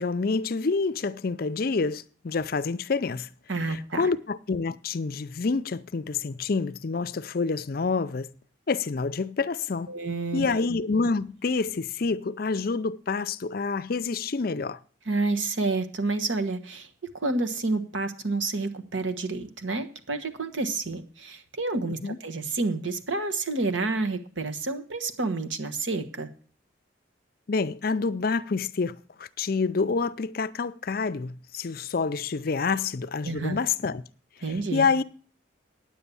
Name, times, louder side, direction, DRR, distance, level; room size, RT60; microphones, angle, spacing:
voice 1, 0.0-3.3 3.7-8.3 8.7-9.9 10.3-14.8 22.0-22.2 27.5-34.0 34.7-35.0, left 4 dB, 50° left, 0.5 m, -27 dB
voice 2, 3.5-4.1 9.9-10.7 15.1-16.9 17.1-26.3 33.2-33.6 34.4-34.9, right 3 dB, 85° right, 1.2 m, -29 dB
9.6 x 8.4 x 6.9 m
head